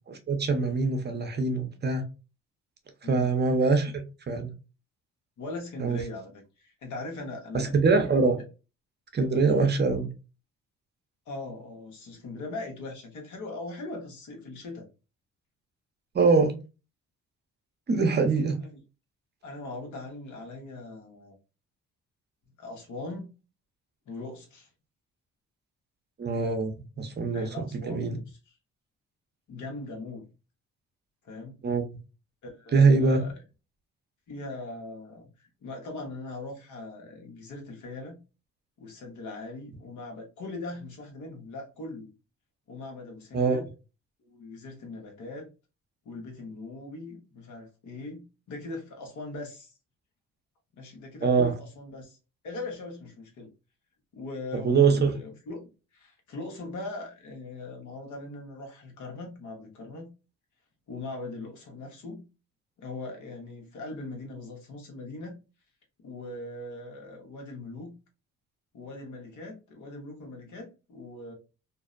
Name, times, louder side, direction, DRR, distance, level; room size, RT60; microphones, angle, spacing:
voice 1, 0.1-2.0 3.0-3.9 4.3-4.5 5.8-6.0 7.5-8.4 9.1-10.1 16.1-16.5 17.9-18.6 26.2-28.2 31.6-31.8 32.7-33.2 43.3-43.6 51.2-51.5 54.5-55.1, right 4 dB, 35° right, 0.6 m, -23 dB
voice 2, 3.0-3.3 5.4-7.7 11.3-14.9 18.7-18.8 19.4-21.4 22.6-23.3 24.1-24.7 27.3-28.4 29.5-30.3 31.2-31.6 32.4-33.3 34.3-38.2 38.8-42.1 42.7-43.7 44.2-45.5 46.0-49.7 50.8-52.2 52.4-53.5 54.1-55.6 55.9-60.1 60.9-62.3 62.8-65.4 66.0-67.9 68.7-71.3, left 2 dB, 75° left, 1.0 m, -40 dB
2.5 x 2.0 x 2.4 m
cardioid pair, 90°, 30 cm